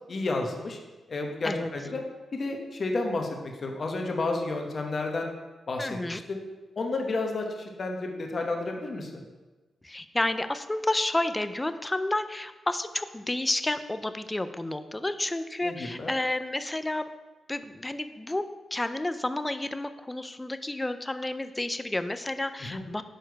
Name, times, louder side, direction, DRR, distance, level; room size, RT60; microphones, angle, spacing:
voice 1, 0.1-0.8 1.1-2.0 2.3-5.3 5.7-6.4 6.8-9.2 15.6-16.1 22.6-22.9, left 2 dB, 50° left, 2 dB, 1.0 m, -31 dB
voice 2, 5.8-6.2 9.8-17.1 17.5-23.0, left 1 dB, 20° left, 10 dB, 0.4 m, -30 dB
6.5 x 4.5 x 4.6 m, 1.2 s
cardioid pair, 60°, 0 cm